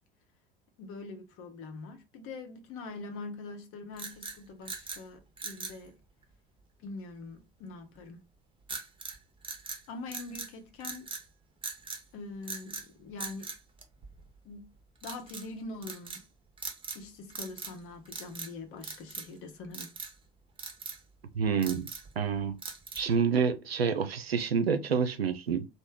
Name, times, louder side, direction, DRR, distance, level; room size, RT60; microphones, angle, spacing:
voice 1, 0.8-6.0 6.8-8.2 9.9-11.1 12.1-13.5 14.4-14.7 15.0-16.2 16.9-19.9, left 3 dB, 45° left, 0.9 m, -43 dB
sound 1, 3.9-5.0 5.4-5.8 8.7-9.2 9.4-10.5 10.8-11.3 11.6-12.0 12.4-12.9 13.2-14.4 15.0-15.5 15.8-16.2 16.6-17.0 17.3-17.8 18.1-18.5 18.8-19.4 19.7-20.1 20.6-21.0 21.4-22.1 22.6-23.2, right 4 dB, 15° right, 0.8 m, -41 dB
voice 2, 21.3-21.9 22.2-22.6 22.9-25.7, right 6 dB, 90° right, 0.5 m, -28 dB
3.1 x 2.2 x 3.6 m
figure-of-eight pair, 65°, 30 cm